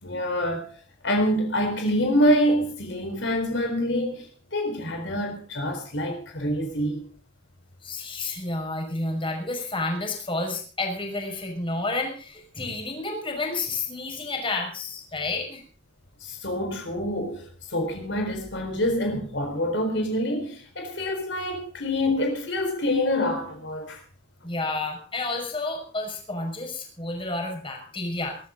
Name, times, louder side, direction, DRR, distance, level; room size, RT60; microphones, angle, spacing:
voice 1, 0.0-0.7 1.0-7.1 16.2-24.0, equal, 70° left, 4.3 m, -26 dB
voice 2, 7.8-15.6 24.4-28.4, left 2 dB, 30° left, 5.8 m, -30 dB
23.0 x 13.0 x 3.9 m
head